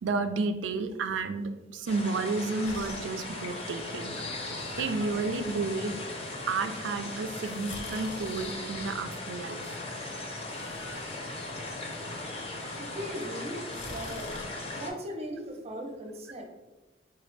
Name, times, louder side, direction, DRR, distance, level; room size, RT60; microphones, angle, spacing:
voice 1, 0.0-4.2 4.8-6.0 6.5-9.8, right 3 dB, 90° right, 9 dB, 0.4 m, -31 dB
sound 1, 1.9-14.9, left 2 dB, 35° left, 0.6 m, -38 dB
sound 2, 2.6-14.4, left 2 dB, 75° left, 0.6 m, -49 dB
voice 2, 12.8-14.3 14.7-16.5, equal, 35° right, 3 dB, 0.5 m, -38 dB
4.0 x 2.2 x 3.2 m, 1.1 s
head